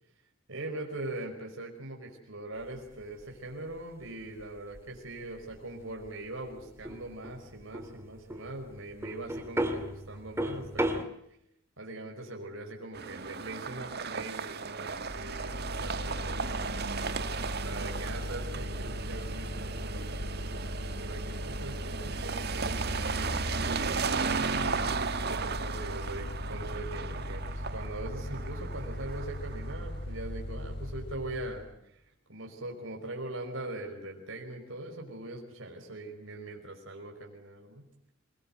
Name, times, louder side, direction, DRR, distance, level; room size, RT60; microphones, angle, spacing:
voice 1, 0.5-11.1 11.8-16.9 17.6-24.4 25.1-32.0 32.3-37.9, right 2 dB, 80° right, 1 dB, 5.2 m, -42 dB
sound 1, 2.6-11.0, right 1 dB, 15° right, 2.7 m, -36 dB
sound 2, 12.9-29.9, right 4 dB, 55° right, 1.7 m, -35 dB
Mechanical fan, 14.9-31.8, left 1 dB, 55° left, 3.5 m, -38 dB
28.0 x 20.5 x 9.1 m, 0.74 s
head